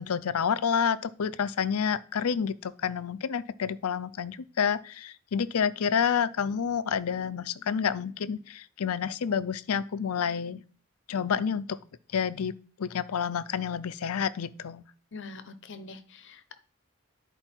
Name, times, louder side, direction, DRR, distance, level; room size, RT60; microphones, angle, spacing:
voice 1, 0.0-10.6 11.1-11.8 12.1-14.8, left 7 dB, 85° left, 16 dB, 0.5 m, -29 dB
voice 2, 15.1-16.6, left 3 dB, 55° left, 11 dB, 0.8 m, -44 dB
10.5 x 4.5 x 4.5 m, 0.41 s
head